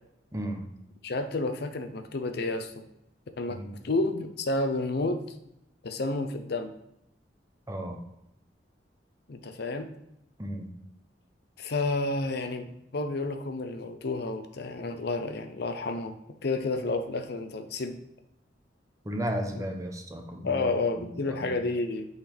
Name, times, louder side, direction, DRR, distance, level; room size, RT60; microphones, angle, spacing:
voice 1, 0.3-0.6 3.5-3.7 7.7-8.0 10.4-10.7 19.0-21.4, equal, 20° right, 4 dB, 0.7 m, -34 dB
voice 2, 1.0-2.7 3.4-3.6 3.8-5.2 5.8-6.7 9.3-9.9 11.6-16.1 16.4-18.0 20.4-22.1, left 2 dB, 60° left, 7 dB, 0.6 m, -30 dB
8.6 x 4.0 x 3.4 m, 0.81 s
head